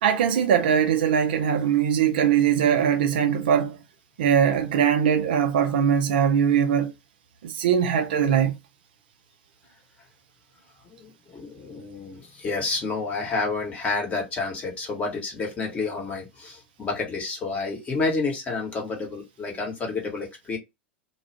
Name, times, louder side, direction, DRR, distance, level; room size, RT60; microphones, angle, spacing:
voice 1, 0.0-3.8 4.2-6.9 7.4-8.5, right 8 dB, 60° right, 0.5 m, -21 dB
voice 2, 10.8-20.6, left 3 dB, 25° left, 1.2 m, -29 dB
2.4 x 2.3 x 3.2 m
figure-of-eight pair, 85°, 6 cm